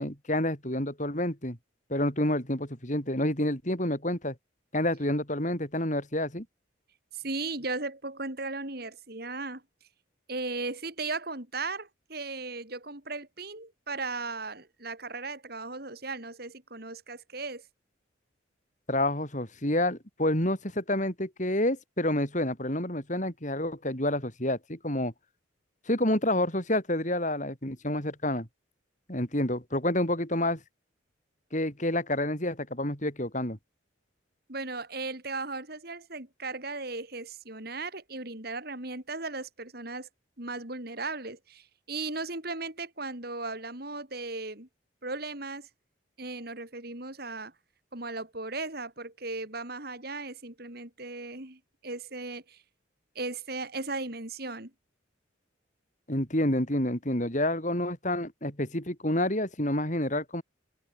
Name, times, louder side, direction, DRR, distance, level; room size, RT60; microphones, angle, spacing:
voice 1, 0.0-1.6 1.9-4.3 4.7-6.5 18.9-25.1 25.9-28.5 29.1-30.6 31.5-33.6 56.1-60.4, left 1 dB, 40° left, 5.3 m, -28 dB
voice 2, 7.1-9.6 10.3-17.6 34.5-40.1 40.4-44.7 45.0-45.7 46.2-47.5 47.9-52.6 53.2-54.7, right 3 dB, 50° right, 4.0 m, -37 dB
head